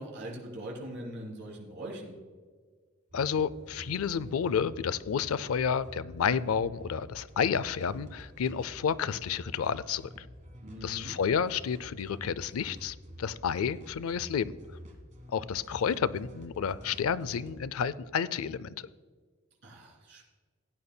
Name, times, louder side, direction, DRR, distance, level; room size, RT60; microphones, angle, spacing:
voice 1, 0.0-2.2 10.6-11.2 19.6-20.3, right 1 dB, 60° right, -2 dB, 3.1 m, -41 dB
voice 2, 3.1-10.1 10.8-14.5 15.3-18.7, left 7 dB, 85° left, 18 dB, 0.4 m, -30 dB
sound 1, 3.1-17.7, equal, 35° right, 1.7 m, -49 dB
16.5 x 9.7 x 2.2 m, 1.5 s
head